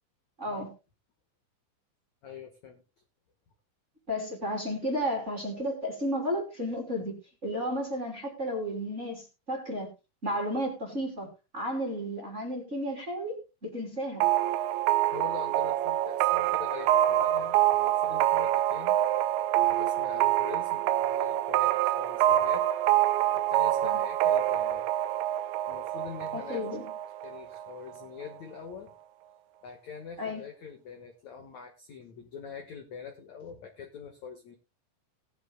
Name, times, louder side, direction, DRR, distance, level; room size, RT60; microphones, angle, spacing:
voice 1, 0.4-0.7 4.1-9.9 10.2-11.3 11.5-14.2 23.8-24.0 26.3-26.9 30.2-30.4, equal, 20° right, 2.4 m, -33 dB
voice 2, 2.2-2.8 15.1-18.9 19.6-22.7 23.3-24.8 25.7-26.8 27.2-28.9 29.6-34.5, left 6 dB, 70° left, 1.7 m, -44 dB
sound 1, 14.2-27.7, right 13 dB, 85° right, 2.2 m, -26 dB
19.0 x 10.5 x 2.2 m
omnidirectional pair, 5.5 m